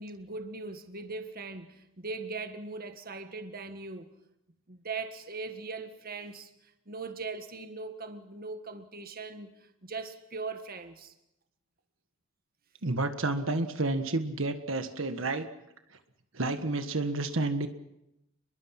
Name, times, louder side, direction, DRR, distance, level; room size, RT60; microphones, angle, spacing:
voice 1, 0.0-4.1 4.7-6.5 6.9-9.5 9.8-11.1, right 3 dB, 45° right, 1.7 m, -40 dB
voice 2, 12.8-15.5 16.3-17.7, right 2 dB, 70° right, 1.6 m, -30 dB
30.0 x 22.0 x 6.0 m
head